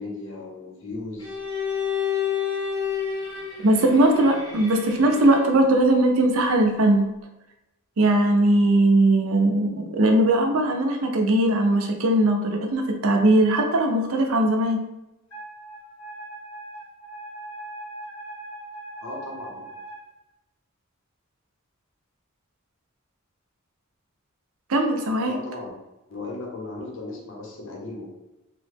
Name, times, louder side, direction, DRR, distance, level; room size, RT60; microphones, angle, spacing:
voice 1, 0.0-1.4 19.0-19.7 25.3-25.7 26.1-28.2, left 2 dB, 60° left, -2 dB, 0.7 m, -36 dB
Bowed string instrument, 1.2-5.7, left 8 dB, 20° left, 0.6 m, -30 dB
voice 2, 3.6-7.1 8.0-14.8 24.7-25.4, right 1 dB, 75° right, 3 dB, 0.5 m, -20 dB
Wind instrument woodwind instrument, 15.3-20.0, right 2 dB, 90° left, 1.1 m, -40 dB
3.0 x 2.0 x 3.3 m, 0.97 s
head